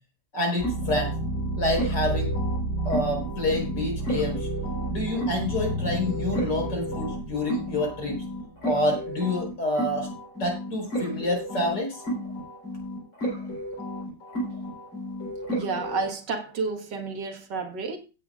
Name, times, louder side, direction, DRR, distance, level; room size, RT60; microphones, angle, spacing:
voice 1, 0.3-1.2 1.6-2.3 2.8-4.5 4.9-8.2 8.6-10.1 10.4-12.0, left 1 dB, 60° left, 5.1 m, -28 dB
sound 1, 0.6-16.1, right 1 dB, 85° left, 4.9 m, -31 dB
voice 2, 15.5-18.0, right 4 dB, 65° right, 2.3 m, -30 dB
17.0 x 8.9 x 2.5 m
omnidirectional pair, 2.1 m